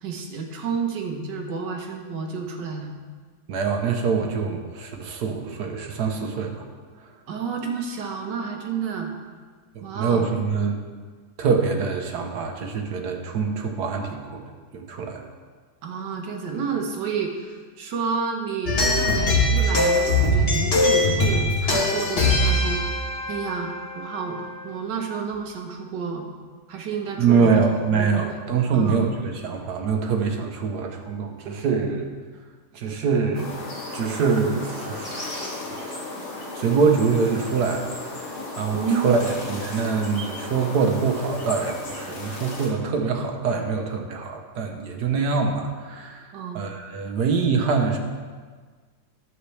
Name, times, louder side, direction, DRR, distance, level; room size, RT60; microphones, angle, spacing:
voice 1, 0.0-2.9 7.3-9.1 9.8-10.3 15.8-22.9 23.3-26.3 26.7-27.6 27.9-28.4 28.7-29.0 38.7-39.1 46.3-46.6, right 5 dB, 85° right, 2 dB, 1.7 m, -30 dB
voice 2, 3.5-6.7 9.7-10.8 11.4-14.4 14.7-15.2 27.2-32.1 32.7-33.5 33.9-36.0 36.3-48.0, right 5 dB, 70° right, 3 dB, 1.4 m, -24 dB
sound 1, 18.7-24.5, left 2 dB, 40° left, 1.2 m, -21 dB
sound 2, 33.3-42.7, left 2 dB, 75° left, 2.5 m, -35 dB
11.0 x 7.4 x 3.3 m, 1.5 s
omnidirectional pair, 1.8 m